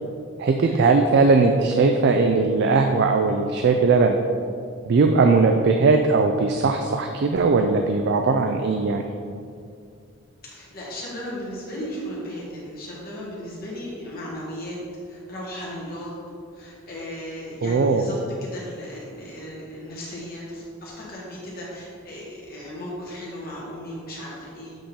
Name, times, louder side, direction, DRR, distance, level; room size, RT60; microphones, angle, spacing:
voice 1, 0.4-4.2 4.9-9.0 17.6-18.0, right 4 dB, 50° right, 5 dB, 0.3 m, -19 dB
voice 2, 10.4-16.1 16.5-24.8, equal, 40° left, -5 dB, 1.6 m, -36 dB
7.7 x 3.7 x 4.2 m, 2.4 s
head